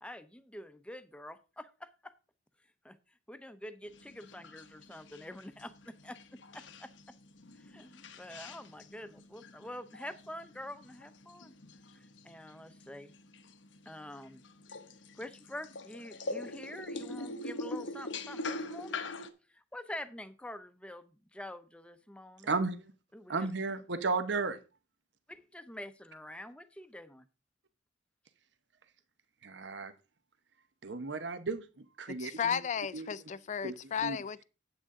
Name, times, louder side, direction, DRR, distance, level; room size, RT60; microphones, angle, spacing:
voice 1, 0.0-2.1 2.8-3.0 3.3-6.2 6.5-6.9 7.6-11.5 11.9-13.1 13.9-14.4 15.2-19.0 19.5-22.5 23.1-23.5 25.3-27.2, left 1 dB, 5° left, 0.7 m, -46 dB
sound 1, 3.8-19.3, left 2 dB, 90° left, 0.9 m, -44 dB
voice 2, 22.4-22.8 23.3-24.6 29.4-29.9 30.8-32.6 32.9-33.1 33.6-33.7 34.0-34.2, right 4 dB, 70° right, 0.9 m, -34 dB
voice 3, 32.1-34.4, left 7 dB, 40° left, 0.4 m, -34 dB
9.0 x 8.6 x 3.7 m
head